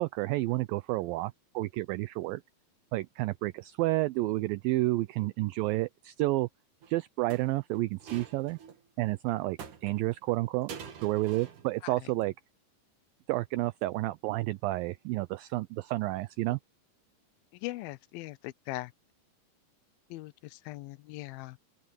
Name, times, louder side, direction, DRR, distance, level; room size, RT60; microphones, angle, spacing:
voice 1, 0.0-2.4 2.9-6.5 6.9-8.6 9.0-10.7 11.0-12.3 13.3-16.6, right 19 dB, 80° right, 2.2 m, -30 dB
sound 1, 6.8-6.9 7.3-8.8 9.6-10.3 10.7-11.8 12.0-12.2, right 7 dB, 55° right, 3.7 m, -46 dB
voice 2, 17.6-18.9 20.1-21.6, left 19 dB, 80° left, 2.4 m, -40 dB
open air
omnidirectional pair, 4.5 m